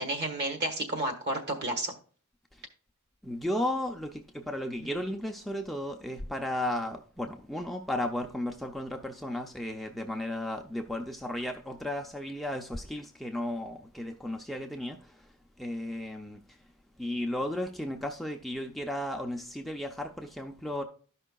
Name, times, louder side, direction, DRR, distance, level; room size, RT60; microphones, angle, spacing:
voice 1, 0.0-1.9 4.8-4.9, right 1 dB, 50° right, 1.3 m, -31 dB
voice 2, 3.2-15.3 15.6-16.6 17.0-20.8, left 1 dB, ahead, 0.4 m, -34 dB
13.0 x 5.5 x 2.2 m
head